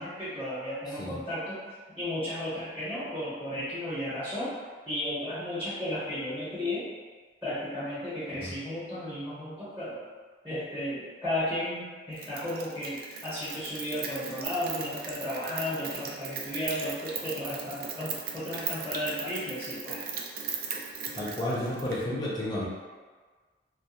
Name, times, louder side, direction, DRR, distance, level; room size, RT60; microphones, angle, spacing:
voice 1, 0.0-1.6 2.0-4.5 4.9-6.9 7.4-10.0 10.4-20.0, left 1 dB, 10° right, -11 dB, 0.8 m, -34 dB
Rain, 12.2-22.0, right 6 dB, 55° right, 0.3 m, -38 dB
voice 2, 21.1-22.7, left 1 dB, 25° left, -6 dB, 0.4 m, -31 dB
2.3 x 2.3 x 2.8 m, 1.4 s
head